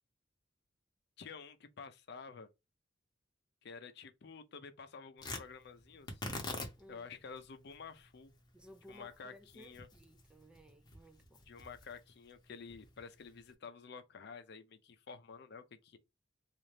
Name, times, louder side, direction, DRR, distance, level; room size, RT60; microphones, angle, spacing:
voice 1, 1.2-2.5 3.6-6.2 6.9-8.3 8.9-9.9 11.5-16.0, left 5 dB, 60° left, 0.5 m, -50 dB
Tearing, 5.2-13.5, left 2 dB, 25° left, 0.8 m, -47 dB
voice 2, 6.8-7.1 8.5-11.4, equal, 5° right, 0.4 m, -58 dB
4.0 x 2.5 x 3.2 m
head